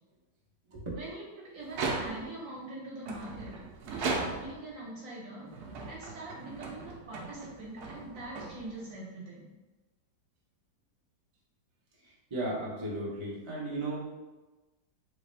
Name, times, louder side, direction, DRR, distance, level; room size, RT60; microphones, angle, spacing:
voice 1, 0.9-9.5, right 2 dB, 55° right, -5 dB, 1.2 m, -43 dB
sound 1, 1.6-2.5 3.0-4.7 5.4-9.0, right 3 dB, 70° right, 1.0 m, -37 dB
voice 2, 12.0-14.2, right 2 dB, 35° right, -6 dB, 0.5 m, -36 dB
3.5 x 3.3 x 3.3 m, 1.1 s
omnidirectional pair, 2.1 m